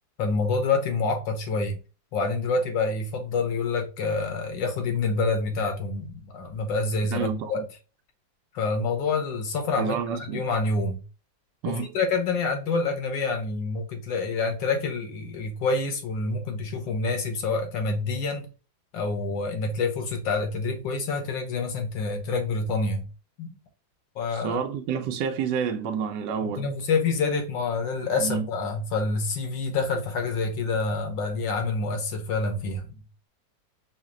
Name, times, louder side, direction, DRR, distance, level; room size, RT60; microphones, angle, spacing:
voice 1, 0.2-1.8 2.1-7.7 8.5-11.0 11.7-18.5 18.9-23.1 23.4-23.6 24.2-24.6 26.4-32.9, left 3 dB, 80° left, 1.8 m, -27 dB
voice 2, 7.1-7.7 9.8-10.4 11.6-11.9 24.3-26.7 28.2-28.5, right 7 dB, 75° right, 1.2 m, -29 dB
5.6 x 2.0 x 3.6 m
omnidirectional pair, 2.0 m